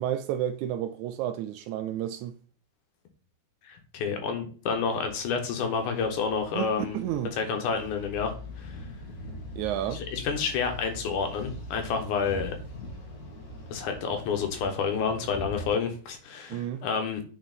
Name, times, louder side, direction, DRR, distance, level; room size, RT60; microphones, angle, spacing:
voice 1, 0.0-2.3 6.5-7.3 9.6-10.0 16.5-16.8, right 11 dB, 80° right, 1.7 m, -31 dB
voice 2, 3.7-7.0 7.4-8.8 9.9-12.6 13.7-17.2, left 5 dB, 75° left, 2.5 m, -29 dB
sound 1, 4.6-15.7, left 1 dB, 60° left, 0.9 m, -42 dB
9.2 x 4.4 x 4.0 m
omnidirectional pair, 3.7 m